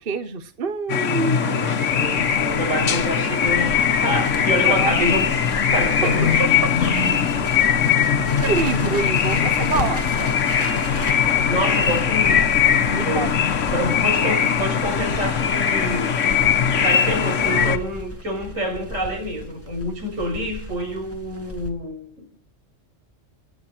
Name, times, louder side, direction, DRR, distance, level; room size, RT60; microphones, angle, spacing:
voice 1, 0.0-1.6 4.6-5.1 6.0-6.1 6.6-6.9 8.3-10.3 12.9-13.3, right 4 dB, 50° right, 10 dB, 1.2 m, -26 dB
sound 1, 0.9-17.8, left 7 dB, 70° left, 1.4 m, -20 dB
voice 2, 1.4-5.3 5.7-6.4 9.1-9.3 11.3-12.5 13.0-13.3 13.7-16.2 16.7-22.3, equal, 85° right, 3 dB, 6.6 m, -27 dB
Crackle, 1.9-21.7, left 1 dB, 10° right, 2.8 m, -35 dB
28.5 x 10.0 x 4.5 m, 0.42 s
omnidirectional pair, 1.3 m